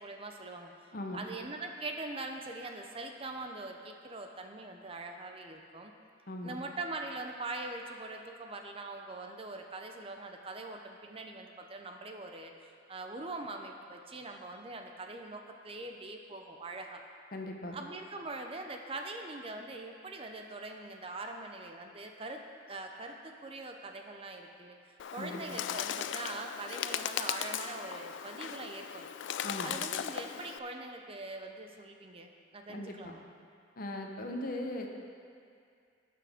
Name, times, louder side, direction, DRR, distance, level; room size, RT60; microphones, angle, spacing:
voice 1, 0.0-5.9 6.4-12.5 12.9-17.0 17.7-22.4 22.7-24.8 25.1-29.1 29.6-33.2, right 2 dB, 30° right, 3 dB, 0.6 m, -42 dB
voice 2, 0.9-1.2 6.3-6.6 17.3-17.8 25.2-25.6 29.4-29.7 32.7-33.1 33.8-34.9, left 1 dB, 50° left, 2 dB, 0.9 m, -39 dB
Bird, 25.0-30.6, left 10 dB, 70° left, 0.3 m, -38 dB
17.0 x 6.0 x 3.6 m, 2.3 s
head